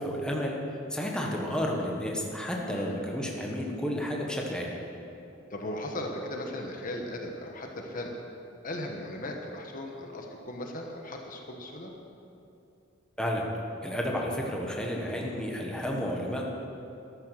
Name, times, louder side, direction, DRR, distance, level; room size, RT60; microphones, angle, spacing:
voice 1, 0.0-4.7 13.2-13.4 13.8-16.5, equal, 5° left, -1 dB, 1.5 m, -31 dB
voice 2, 2.6-3.0 5.5-8.1 8.6-11.9, left 1 dB, 45° left, 2 dB, 1.3 m, -37 dB
13.5 x 11.5 x 6.5 m, 2.8 s
head